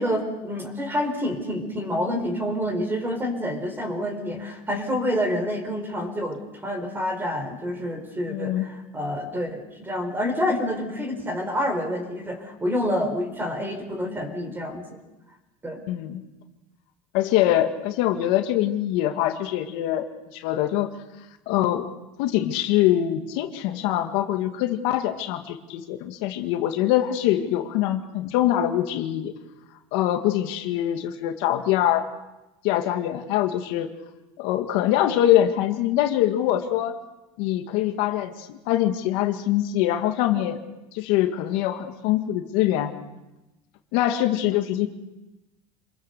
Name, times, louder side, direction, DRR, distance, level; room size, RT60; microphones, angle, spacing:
voice 1, 0.0-14.8 15.6-15.8, equal, 10° right, 6 dB, 4.5 m, -28 dB
voice 2, 8.3-8.7 15.9-16.2 17.1-20.0 20.3-20.9 21.5-21.9 22.2-29.3 29.9-32.1 32.6-33.9 34.4-37.0 37.4-40.6 40.9-42.9 43.9-44.9, left 12 dB, 70° left, 5 dB, 1.9 m, -23 dB
27.0 x 21.0 x 6.8 m, 1.0 s
cardioid pair, 150°, 18 cm